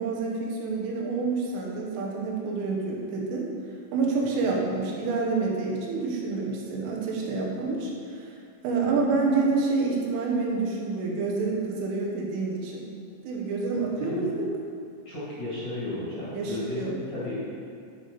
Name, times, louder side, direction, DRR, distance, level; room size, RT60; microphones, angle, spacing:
voice 1, 0.0-3.5 3.9-8.4 8.6-12.9 13.2-14.5 16.3-16.9, right 4 dB, 80° right, -2 dB, 3.7 m, -28 dB
voice 2, 15.0-17.5, left 1 dB, 35° left, -10 dB, 2.6 m, -33 dB
12.5 x 6.8 x 4.1 m, 2.4 s
omnidirectional pair, 5.7 m